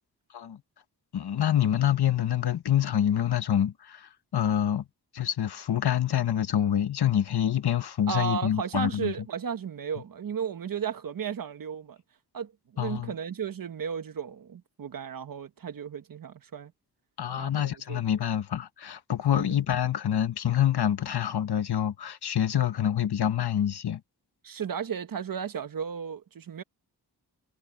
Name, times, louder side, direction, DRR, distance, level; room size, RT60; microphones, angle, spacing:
voice 1, 1.1-4.8 5.1-9.1 12.8-13.1 17.2-24.0, left 10 dB, 75° left, 1.4 m, -26 dB
voice 2, 8.1-12.0 12.3-16.7 17.4-18.0 19.3-19.4 24.4-26.6, right 7 dB, 55° right, 1.2 m, -34 dB
wide cardioid pair, 145°, 40 cm